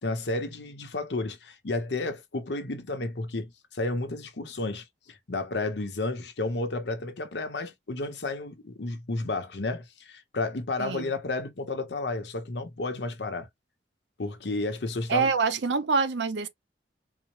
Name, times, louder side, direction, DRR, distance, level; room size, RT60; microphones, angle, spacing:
voice 1, 0.0-13.5 14.2-15.3, left 2 dB, 75° left, 0.8 m, -32 dB
voice 2, 10.8-11.1 15.1-16.5, right 5 dB, 80° right, 0.6 m, -26 dB
4.1 x 2.1 x 3.0 m
head